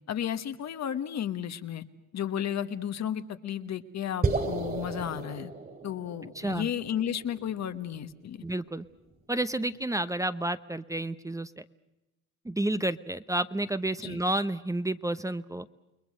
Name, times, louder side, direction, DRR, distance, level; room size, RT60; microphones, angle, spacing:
voice 1, 0.1-1.8 2.1-5.5 5.8-8.4 14.0-14.2, left 9 dB, 60° left, 10 dB, 1.4 m, -33 dB
sound 1, 4.2-8.6, right 3 dB, 30° right, 3.1 m, -34 dB
voice 2, 6.3-6.7 8.4-8.8 9.3-11.6 12.4-15.7, right 1 dB, 10° right, 12 dB, 0.8 m, -30 dB
30.0 x 21.0 x 6.5 m, 0.95 s
cardioid pair, 90°, 30 cm